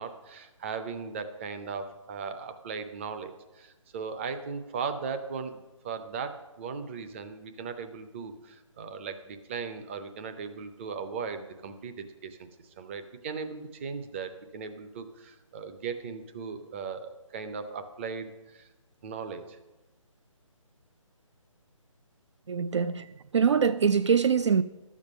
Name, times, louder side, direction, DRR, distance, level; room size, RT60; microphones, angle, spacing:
voice 1, 0.0-12.5 12.8-18.7 19.0-19.6, right 5 dB, 20° right, 0.6 m, -38 dB
voice 2, 22.5-24.6, right 6 dB, 60° right, 0.4 m, -24 dB
12.0 x 7.3 x 5.4 m
figure-of-eight pair, 150°, 17 cm